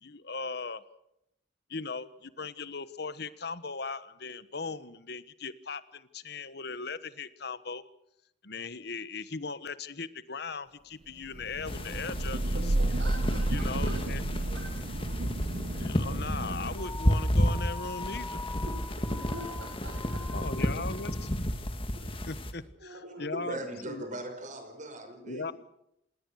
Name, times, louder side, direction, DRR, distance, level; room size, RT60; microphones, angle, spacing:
voice 1, 0.0-0.8 1.7-7.8 8.4-12.6 13.5-14.2 15.8-18.4 20.3-21.3 22.3-23.6 23.9-24.1 25.2-25.5, left 4 dB, 60° left, 14 dB, 1.3 m, -38 dB
Thunder / Rain, 11.3-17.1, right 2 dB, 60° right, 1.0 m, -32 dB
sound 1, 11.7-22.5, equal, 30° left, 2.2 m, -32 dB
voice 2, 12.5-13.9 14.5-14.6 18.6-20.5 21.9-22.3 22.8-23.6, right 1 dB, 80° right, 0 dB, 5.9 m, -45 dB
sound 2, 16.8-21.4, left 3 dB, 10° left, 0.9 m, -43 dB
voice 3, 23.3-25.5, right 1 dB, 45° right, 6 dB, 5.7 m, -39 dB
27.5 x 19.0 x 6.4 m, 0.78 s
head